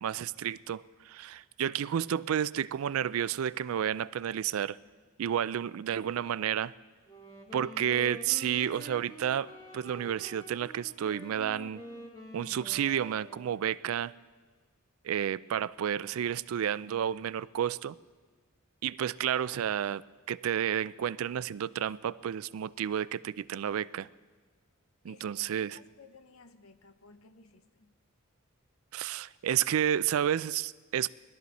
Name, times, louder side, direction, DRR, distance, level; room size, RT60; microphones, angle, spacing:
voice 1, 0.0-4.8 5.2-6.7 7.5-11.8 12.3-14.1 15.0-18.0 18.8-24.1 25.0-25.8 28.9-31.1, right 9 dB, 80° right, 0.3 m, -31 dB
Wind instrument woodwind instrument, 7.0-13.8, equal, 20° left, 1.5 m, -48 dB
voice 2, 25.1-27.9, left 4 dB, 80° left, 0.9 m, -57 dB
20.5 x 12.5 x 4.1 m
head